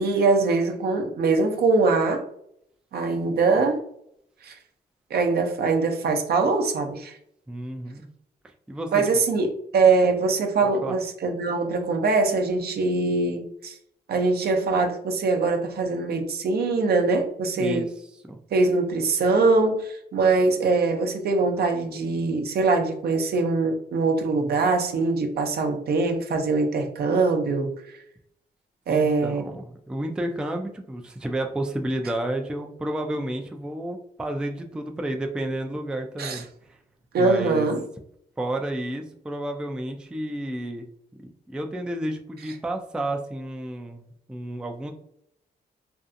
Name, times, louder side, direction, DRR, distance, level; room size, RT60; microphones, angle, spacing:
voice 1, 0.0-2.2 2.9-3.8 4.4-4.5 5.1-7.2 8.9-13.7 14.1-17.9 18.5-27.7 28.9-29.4 36.2-36.4 37.1-37.8, right 3 dB, 65° right, 4 dB, 0.6 m, -22 dB
voice 2, 7.5-8.1 8.7-9.2 10.6-11.0 17.6-17.9 18.2-18.4 28.9-36.4 36.7-36.8 37.2-37.7 38.4-40.9 41.2-44.9, right 1 dB, 5° right, 4 dB, 0.3 m, -31 dB
2.5 x 2.4 x 2.5 m, 0.72 s
cardioid pair, 85°, 17 cm